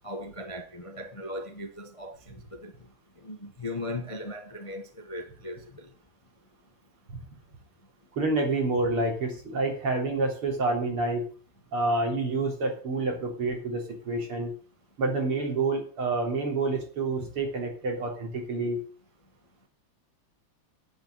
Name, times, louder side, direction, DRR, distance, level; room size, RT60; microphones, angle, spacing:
voice 1, 0.0-2.7 3.2-5.9, left 1 dB, 20° left, 0.9 m, -38 dB
voice 2, 8.1-11.3 11.7-14.5 15.0-18.8, right 2 dB, 75° right, 4.6 m, -28 dB
9.1 x 8.8 x 8.0 m
omnidirectional pair, 2.4 m